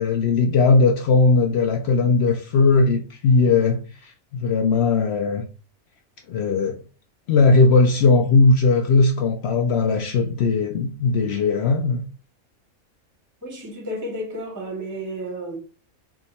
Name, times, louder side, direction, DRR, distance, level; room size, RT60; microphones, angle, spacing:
voice 1, 0.0-5.4 6.3-6.8 7.3-12.0, left 3 dB, 65° left, 0.7 m, -18 dB
voice 2, 13.4-15.6, equal, 15° right, 0.7 m, -32 dB
3.5 x 2.2 x 4.0 m
omnidirectional pair, 1.5 m